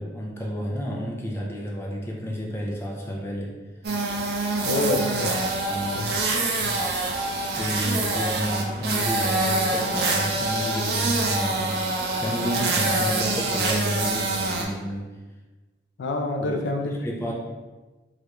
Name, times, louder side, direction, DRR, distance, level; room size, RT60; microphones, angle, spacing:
voice 1, 0.0-3.6 5.7-6.1 7.5-11.8 12.2-15.1 16.4-17.3, equal, 15° left, -2 dB, 0.4 m, -31 dB
sound 1, 3.8-14.6, right 2 dB, 60° right, 0.5 m, -25 dB
voice 2, 4.6-5.5 5.9-6.2 6.6-6.7 16.0-17.0 17.3-17.4, left 2 dB, 85° left, 4 dB, 0.4 m, -27 dB
3.2 x 2.5 x 2.9 m, 1.2 s
head